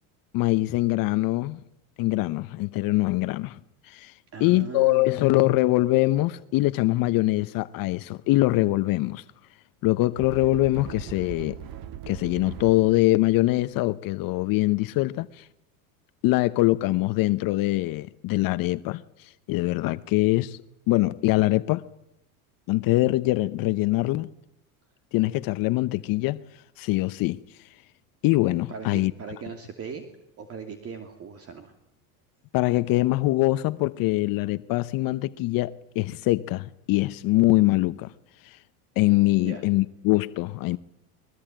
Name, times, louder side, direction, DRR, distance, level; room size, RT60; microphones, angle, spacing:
voice 1, 0.3-1.6 2.0-4.1 4.4-9.2 9.8-11.6 12.1-15.5 16.2-20.6 20.9-21.9 22.7-24.3 25.1-26.4 26.8-27.4 28.2-29.1 32.5-38.1 38.4-38.6 39.0-40.8, left 19 dB, 50° left, 0.9 m, -23 dB
voice 2, 4.3-5.2 28.7-30.0 30.4-31.7 39.4-39.7, right 5 dB, 35° right, 2.9 m, -38 dB
sound 1, 10.2-13.8, right 10 dB, 55° right, 1.9 m, -40 dB
22.0 x 21.5 x 9.0 m
supercardioid pair, 125°, 42 cm